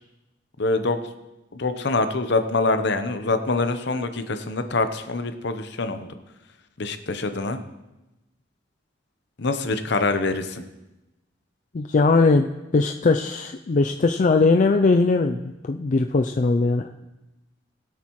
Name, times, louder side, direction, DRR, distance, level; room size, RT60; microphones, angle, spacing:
voice 1, 0.6-1.0 1.5-6.1 6.8-7.6 9.4-10.6, left 3 dB, 60° left, 9 dB, 0.9 m, -25 dB
voice 2, 11.7-12.5 12.7-16.9, left 3 dB, 40° left, 5 dB, 0.4 m, -20 dB
21.0 x 8.5 x 3.1 m, 1.0 s
head